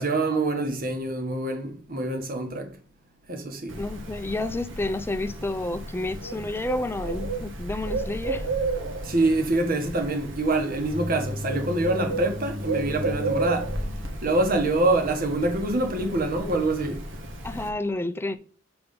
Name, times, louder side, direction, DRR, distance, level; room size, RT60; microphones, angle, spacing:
voice 1, 0.0-2.8 3.3-3.8 9.0-13.8 14.2-17.0, right 2 dB, 45° right, 1.4 m, -25 dB
Bird, 3.7-17.7, right 2 dB, 80° right, 1.5 m, -33 dB
voice 2, 3.8-8.5 17.4-18.4, left 2 dB, 10° left, 0.5 m, -30 dB
7.0 x 3.5 x 5.3 m
head